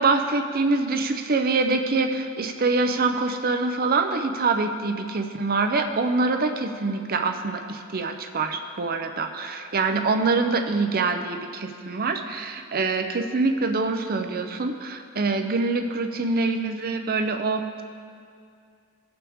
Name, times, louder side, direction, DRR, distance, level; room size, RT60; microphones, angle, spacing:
voice 1, 0.0-17.8, right 3 dB, 45° right, 6 dB, 0.6 m, -25 dB
17.5 x 5.9 x 3.6 m, 2.3 s
head